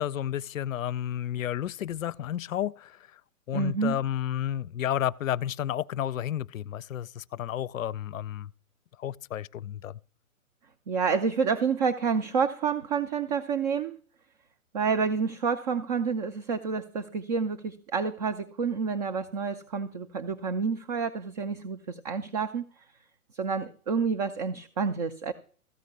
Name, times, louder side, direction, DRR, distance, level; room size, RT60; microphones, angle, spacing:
voice 1, 0.0-3.0 3.5-8.5 9.0-10.0, left 11 dB, 65° left, 0.5 m, -31 dB
voice 2, 3.5-4.0 10.9-14.0 14.7-22.7 23.3-25.3, right 5 dB, 30° right, 0.5 m, -29 dB
14.0 x 5.1 x 8.0 m
figure-of-eight pair, 125°, 42 cm